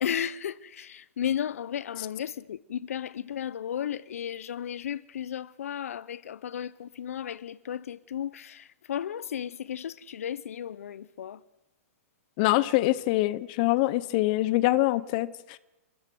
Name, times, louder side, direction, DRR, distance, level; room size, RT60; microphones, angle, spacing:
voice 1, 0.0-8.6 8.9-11.4, left 9 dB, 75° left, 0.7 m, -34 dB
voice 2, 12.4-15.6, left 17 dB, 35° left, 0.8 m, -25 dB
28.5 x 13.5 x 7.8 m
hypercardioid pair, 155°, 8 cm